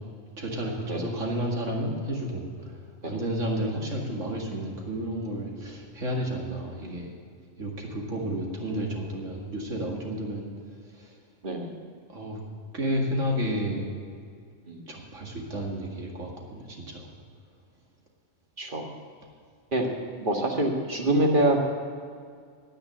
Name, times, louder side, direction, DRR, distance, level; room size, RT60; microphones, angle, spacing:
voice 1, 0.4-7.1 7.6-10.5 10.9-11.2 12.1-12.4 12.7-14.2 14.9-17.1, equal, 75° right, -1 dB, 2.5 m, -31 dB
voice 2, 20.2-21.6, right 1 dB, 40° right, 1 dB, 1.8 m, -25 dB
10.5 x 9.9 x 8.8 m, 2.2 s
omnidirectional pair, 1.3 m